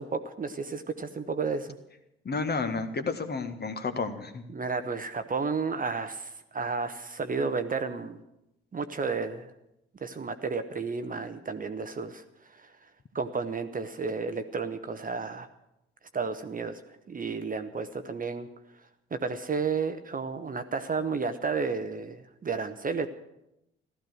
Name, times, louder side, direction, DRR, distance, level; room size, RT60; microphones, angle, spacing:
voice 1, 0.0-1.8 4.5-8.2 8.7-9.5 10.0-12.8 13.1-15.5 16.1-18.5 19.1-23.1, right 4 dB, 25° right, 9 dB, 1.0 m, -32 dB
voice 2, 2.2-4.4, left 4 dB, 30° left, 8 dB, 1.6 m, -31 dB
16.0 x 13.5 x 6.4 m, 0.86 s
figure-of-eight pair, 45°, 31 cm